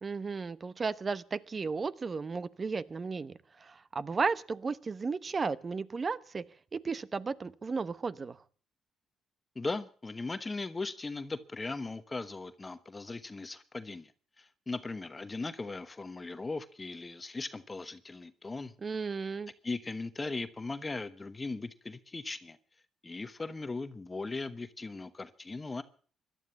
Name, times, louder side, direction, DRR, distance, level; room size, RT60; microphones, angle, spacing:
voice 1, 0.0-6.4 6.7-8.4 18.8-19.5, right 4 dB, 35° right, 0.9 m, -34 dB
voice 2, 9.5-14.1 14.4-18.7 19.6-22.6 23.0-25.8, left 3 dB, 25° left, 1.1 m, -38 dB
17.5 x 12.0 x 7.0 m
cardioid pair, 90°, 0 cm